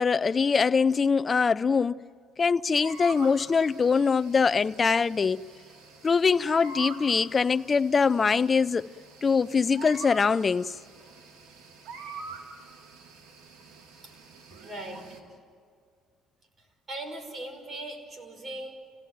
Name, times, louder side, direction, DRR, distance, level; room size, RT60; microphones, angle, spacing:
voice 1, 0.0-2.0 2.4-5.4 6.0-8.9 9.2-10.7, left 5 dB, 30° left, 0.5 m, -23 dB
sound 1, 2.8-15.2, right 4 dB, 70° right, 3.5 m, -45 dB
voice 2, 14.6-15.4 16.6-18.7, right 1 dB, 35° right, 5.3 m, -40 dB
29.5 x 17.0 x 9.2 m
cardioid pair, 105°, 0 cm